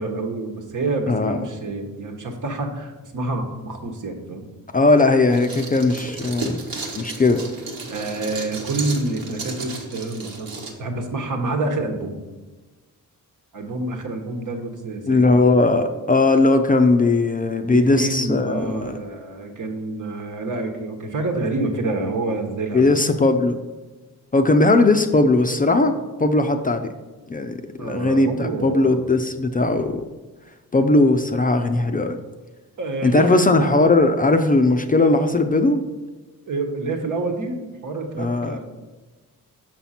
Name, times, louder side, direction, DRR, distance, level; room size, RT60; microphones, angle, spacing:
voice 1, 0.0-4.5 7.9-10.5 10.8-12.2 13.5-15.4 17.6-22.8 27.8-29.2 32.8-33.5 36.5-38.6, right 2 dB, 60° right, 3 dB, 1.2 m, -27 dB
voice 2, 1.1-1.4 4.7-6.6 7.0-7.4 15.1-19.0 22.7-23.6 24.3-25.9 26.2-26.9 27.3-30.0 30.7-32.2 33.0-35.8 38.2-38.6, left 2 dB, 25° left, 6 dB, 0.4 m, -18 dB
sound 1, 5.3-10.7, right 3 dB, 85° right, 1.3 m, -33 dB
6.1 x 5.8 x 4.2 m, 1.2 s
cardioid pair, 100°, 35 cm